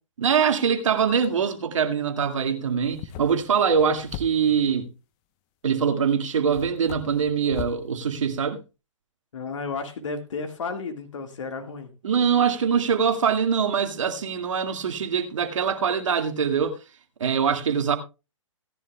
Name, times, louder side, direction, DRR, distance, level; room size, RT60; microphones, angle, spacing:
voice 1, 0.2-4.9 5.6-8.6 12.0-16.7 17.2-18.0, right 7 dB, 65° right, 2.1 m, -23 dB
sound 1, 2.8-4.7 5.8-5.9 6.5-7.8, left 9 dB, 30° left, 0.9 m, -40 dB
voice 2, 9.3-11.9, left 4 dB, 65° left, 1.9 m, -33 dB
18.0 x 10.5 x 2.3 m
hypercardioid pair, 130°, 17 cm